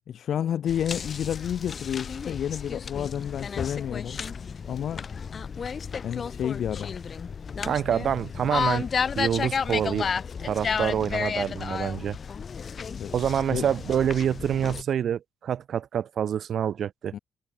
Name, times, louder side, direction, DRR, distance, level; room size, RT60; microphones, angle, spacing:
voice 1, 0.1-4.2 4.7-5.1 6.0-6.9 13.0-13.1 13.5-13.7 17.1-17.2, left 9 dB, 65° left, 2.0 m, -30 dB
sound 1, 0.7-14.8, left 6 dB, 45° left, 4.6 m, -32 dB
voice 2, 7.6-8.9 9.2-10.1 10.4-12.2 13.1-17.1, right 9 dB, 60° right, 4.2 m, -26 dB
cardioid pair, 90°, 0 cm